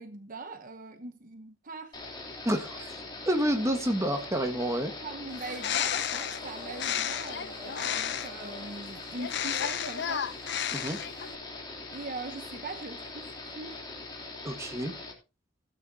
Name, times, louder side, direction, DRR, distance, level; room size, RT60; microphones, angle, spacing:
voice 1, 0.0-2.0 5.0-10.3 11.9-13.8, right 3 dB, 45° right, 1.0 m, -41 dB
sound 1, 1.9-15.1, left 3 dB, 25° left, 3.4 m, -42 dB
sound 2, 1.9-8.8, left 1 dB, ahead, 4.1 m, -50 dB
voice 2, 2.4-3.0 3.2-4.9 10.7-11.0 14.4-14.9, equal, 15° right, 1.6 m, -29 dB
Bird, 5.3-8.5 9.2-11.4, left 9 dB, 60° left, 0.7 m, -32 dB
16.5 x 8.9 x 2.8 m
head